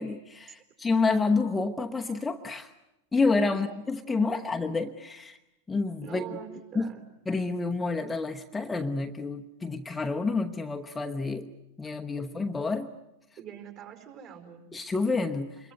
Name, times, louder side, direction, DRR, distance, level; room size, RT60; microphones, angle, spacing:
voice 1, 0.0-2.7 3.1-5.4 5.7-6.9 7.3-11.5 11.8-12.9 14.7-15.7, left 3 dB, 10° left, 4 dB, 1.0 m, -29 dB
voice 2, 4.1-4.4 6.0-7.0 12.2-12.3 13.4-14.6, right 8 dB, 40° right, 6 dB, 4.9 m, -44 dB
26.5 x 22.5 x 9.5 m, 0.91 s
figure-of-eight pair, 90°, 0 cm